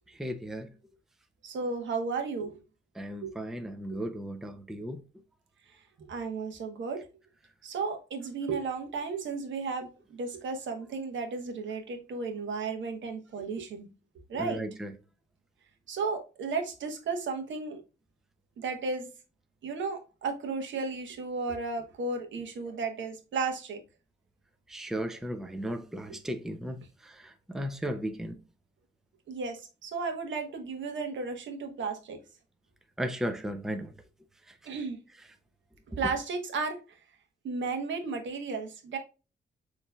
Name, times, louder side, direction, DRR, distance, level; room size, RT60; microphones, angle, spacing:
voice 1, 0.1-0.7 3.0-5.0 14.4-14.9 24.7-26.8 27.0-28.4 33.0-33.9, right 1 dB, ahead, 0.5 m, -35 dB
voice 2, 1.4-2.6 3.2-3.3 6.0-7.0 7.6-13.9 14.3-14.6 15.9-17.8 18.6-19.1 19.6-23.8 29.3-32.2 34.6-35.0 36.0-36.8 37.4-39.0, right 4 dB, 80° right, 1.1 m, -34 dB
6.8 x 3.1 x 2.3 m
wide cardioid pair, 140°, 19 cm